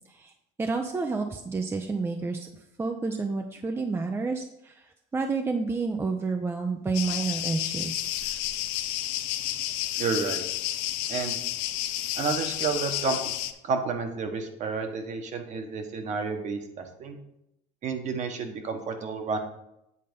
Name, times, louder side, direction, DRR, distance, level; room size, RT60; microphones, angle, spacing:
voice 1, 0.6-2.5 2.8-8.0, right 4 dB, 15° right, 5 dB, 0.5 m, -30 dB
sound 1, 6.9-13.5, left 13 dB, 85° left, 0.6 m, -31 dB
voice 2, 10.0-10.4 11.1-11.4 12.2-13.2 13.6-17.2 17.8-19.4, right 4 dB, 45° right, 5 dB, 1.2 m, -30 dB
8.7 x 4.1 x 5.2 m, 0.82 s
supercardioid pair, 120°, 17 cm